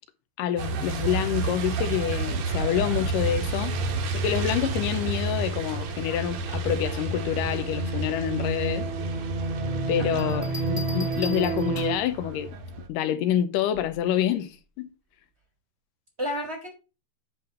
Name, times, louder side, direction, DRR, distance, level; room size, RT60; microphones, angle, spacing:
voice 1, 0.4-3.8 4.1-8.9 9.9-12.5 12.9-14.9, left 10 dB, 75° left, 2.2 m, -27 dB
Truck, 0.6-12.9, right 3 dB, 65° right, 2.0 m, -31 dB
sound 1, 3.4-11.9, right 3 dB, 85° right, 4.1 m, -33 dB
voice 2, 10.0-10.6 16.2-16.7, left 1 dB, 30° right, 1.3 m, -33 dB
Bell, 10.2-12.1 13.7-14.1, left 3 dB, 15° left, 0.7 m, -40 dB
9.6 x 3.4 x 5.6 m
omnidirectional pair, 4.1 m